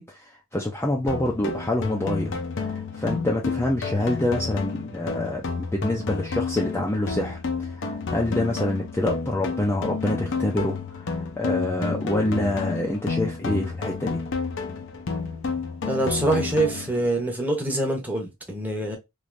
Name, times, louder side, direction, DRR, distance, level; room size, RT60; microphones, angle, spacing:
voice 1, 0.0-14.2, left 1 dB, 10° left, 0.4 m, -26 dB
sound 1, 1.1-17.1, left 4 dB, 55° left, 0.6 m, -30 dB
voice 2, 15.8-19.0, right 2 dB, 10° right, 0.8 m, -25 dB
3.2 x 2.6 x 2.5 m
head